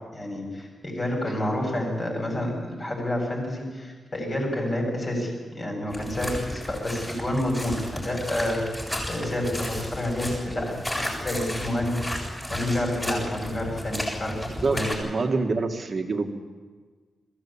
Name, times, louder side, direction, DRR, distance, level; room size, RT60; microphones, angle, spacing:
voice 1, 0.1-8.6 9.1-14.3 14.7-14.9, left 1 dB, 30° left, 0 dB, 7.4 m, -29 dB
sound 1, 5.9-14.9, left 1 dB, 15° left, 7.4 m, -33 dB
voice 2, 14.6-16.3, right 3 dB, 45° right, 4 dB, 2.0 m, -26 dB
22.5 x 16.0 x 8.8 m, 1.5 s
wide cardioid pair, 135°, 0 cm